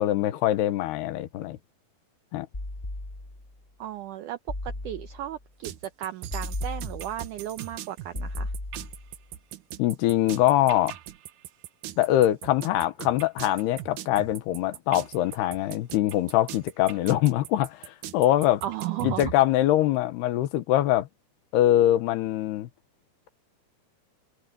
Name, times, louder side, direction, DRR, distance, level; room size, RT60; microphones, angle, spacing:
voice 1, 0.0-1.6 2.3-2.5 9.8-10.9 12.0-18.6 19.0-21.1 21.5-22.7, left 13 dB, 85° left, 3.2 m, -23 dB
sound 1, 2.5-3.6 4.5-5.4 6.3-7.4 8.1-9.2, left 2 dB, 15° left, 2.3 m, -35 dB
voice 2, 3.8-8.5 18.6-19.3, right 12 dB, 85° right, 1.8 m, -35 dB
sound 2, 5.6-19.3, right 12 dB, 70° right, 2.1 m, -39 dB
omnidirectional pair, 4.6 m